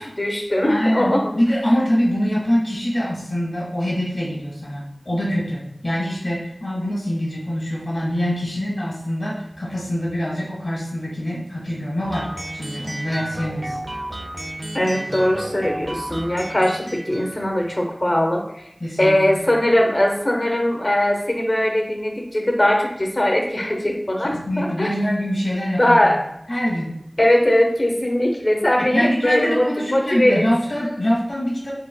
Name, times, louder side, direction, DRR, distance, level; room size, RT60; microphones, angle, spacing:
voice 1, 0.0-1.4 14.7-18.6 19.0-24.9 25.8-26.2 27.2-30.4, left 1 dB, 50° left, 1 dB, 0.7 m, -20 dB
voice 2, 0.6-13.8 18.8-19.5 24.2-26.2 26.5-26.9 28.8-31.7, equal, 85° left, -5 dB, 1.5 m, -24 dB
sound 1, 12.0-17.8, right 1 dB, 50° right, 0.3 m, -33 dB
4.6 x 3.5 x 2.2 m, 0.78 s
wide cardioid pair, 45°, 0 cm